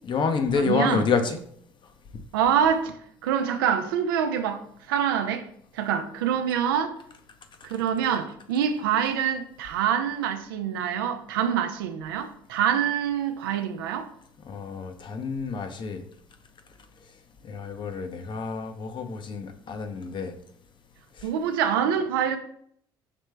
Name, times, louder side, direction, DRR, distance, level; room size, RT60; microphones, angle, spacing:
voice 1, 0.0-1.4 14.4-16.0 17.4-20.3 21.2-21.3, left 5 dB, 45° left, 0.7 m, -28 dB
voice 2, 0.6-1.0 2.3-3.0 3.2-4.6 4.9-5.5 5.7-6.9 7.6-14.1 21.2-22.4, right 8 dB, 90° right, 0.5 m, -25 dB
5.0 x 3.2 x 3.3 m
hypercardioid pair, 70°, 11 cm